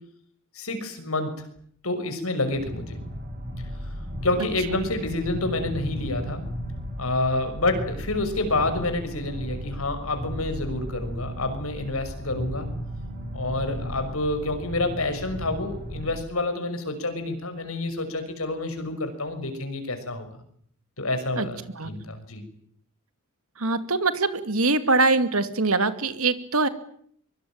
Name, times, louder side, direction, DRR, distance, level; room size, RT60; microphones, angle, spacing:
voice 1, 0.5-1.5 1.8-3.0 4.2-6.4 7.0-12.7 13.3-20.3 21.0-22.4, left 2 dB, 75° left, 8 dB, 6.1 m, -28 dB
sound 1, 2.5-16.2, equal, 40° right, 6.1 m, -35 dB
voice 2, 23.6-26.7, right 3 dB, 75° right, 11 dB, 2.6 m, -23 dB
24.5 x 23.5 x 8.9 m, 0.65 s
head